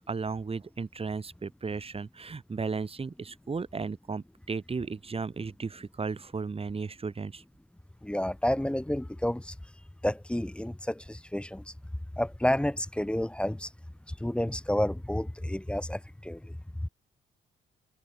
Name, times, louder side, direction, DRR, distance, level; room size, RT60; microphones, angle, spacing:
voice 1, 0.0-7.4, right 4 dB, 30° right, 2.3 m, -35 dB
voice 2, 8.0-9.5 10.0-11.6 12.2-13.7 14.1-16.5, left 1 dB, 5° left, 0.9 m, -30 dB
cardioid pair, 90°, 20 cm